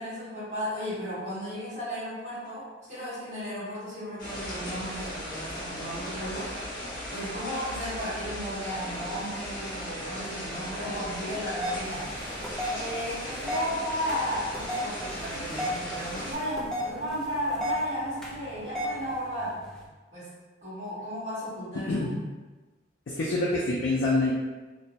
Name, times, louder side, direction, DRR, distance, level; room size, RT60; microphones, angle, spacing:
voice 1, 0.0-6.5 7.1-12.0 12.7-19.6 20.1-20.3 20.6-21.9, equal, 40° right, -15 dB, 1.2 m, -34 dB
sound 1, 4.2-16.4, equal, 50° left, 0.8 m, -37 dB
sound 2, 11.6-19.9, left 1 dB, 5° left, 0.3 m, -36 dB
voice 2, 21.7-22.2 23.1-24.3, left 2 dB, 70° left, -5 dB, 0.4 m, -26 dB
2.6 x 2.0 x 2.8 m, 1.2 s
head